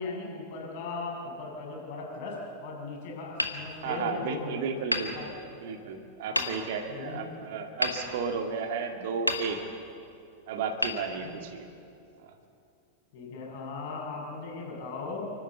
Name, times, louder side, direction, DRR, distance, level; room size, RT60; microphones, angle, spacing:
voice 1, 0.0-4.7 5.1-5.3 6.3-6.5 6.9-7.3 7.9-8.2 11.2-11.4 13.1-15.2, left 3 dB, 50° left, -2 dB, 7.1 m, -38 dB
Hammer, 3.3-4.4 4.9-5.8 6.3-7.0 7.8-8.8 9.2-10.0 10.8-11.7, left 1 dB, 90° left, 1.5 m, -33 dB
voice 2, 3.8-5.3 5.6-9.6 10.5-11.7 12.2-12.3, right 5 dB, 55° right, 5 dB, 1.9 m, -33 dB
30.0 x 12.0 x 8.1 m, 2.5 s
figure-of-eight pair, 90°, 0 cm